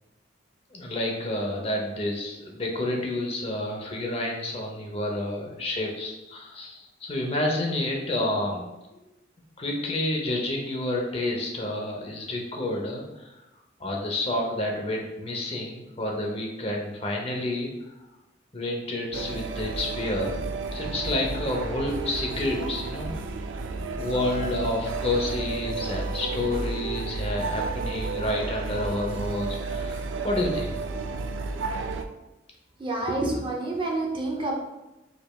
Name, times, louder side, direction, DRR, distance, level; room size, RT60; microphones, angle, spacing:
voice 1, 0.7-9.0 9.6-13.3 13.8-17.9 18.5-20.4 20.7-23.1 24.0-30.8, left 1 dB, 30° left, 0 dB, 0.6 m, -29 dB
sound 1, 19.1-32.0, right 3 dB, 80° right, 0.3 m, -32 dB
voice 2, 32.8-34.5, right 2 dB, 25° right, -1 dB, 0.6 m, -28 dB
5.0 x 3.3 x 2.2 m, 0.98 s
head